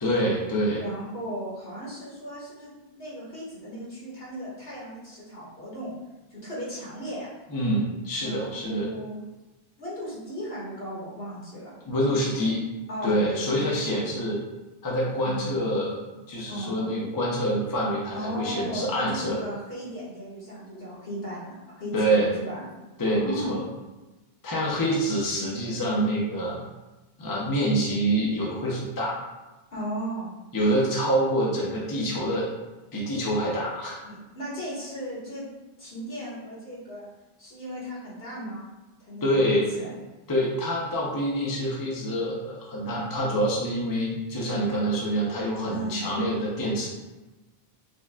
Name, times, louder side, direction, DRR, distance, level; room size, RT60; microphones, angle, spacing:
voice 1, 0.0-0.8 7.5-8.9 11.8-12.6 13.0-14.4 14.8-19.4 21.9-22.3 23.0-23.6 24.4-26.6 27.2-29.2 30.5-32.5 32.9-34.0 39.2-39.6 40.3-46.9, equal, 25° left, -4 dB, 0.6 m, -26 dB
voice 2, 0.8-2.7 2.9-5.9 6.3-7.3 8.2-9.2 9.8-11.7 12.3-12.5 12.9-14.1 15.2-15.6 16.5-16.9 18.1-22.6 23.0-23.6 29.7-30.3 34.0-35.5 35.8-37.1 37.4-38.7 39.0-39.9 45.7-46.0, equal, 70° left, -8 dB, 1.6 m, -36 dB
5.1 x 2.3 x 2.3 m, 1.1 s
omnidirectional pair, 1.0 m